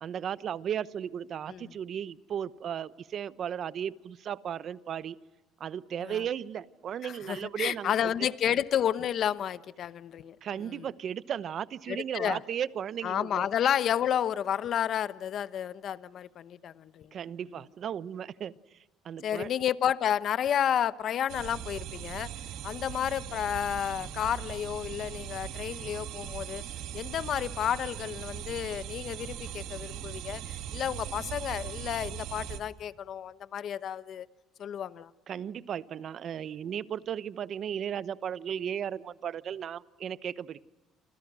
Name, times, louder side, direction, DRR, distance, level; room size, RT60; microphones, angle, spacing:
voice 1, 0.0-5.2 5.6-7.9 10.4-13.5 17.1-18.5 19.0-19.5 35.3-40.6, right 9 dB, 45° right, 0.9 m, -35 dB
voice 2, 7.0-10.4 10.7-10.8 11.9-12.4 13.0-17.1 19.2-22.3 22.6-26.6 26.9-34.3 34.6-35.1, left 9 dB, 50° left, 1.0 m, -31 dB
sound 1, 21.3-32.6, right 10 dB, 75° right, 2.3 m, -40 dB
28.5 x 27.5 x 6.2 m
cardioid pair, 120°, 0 cm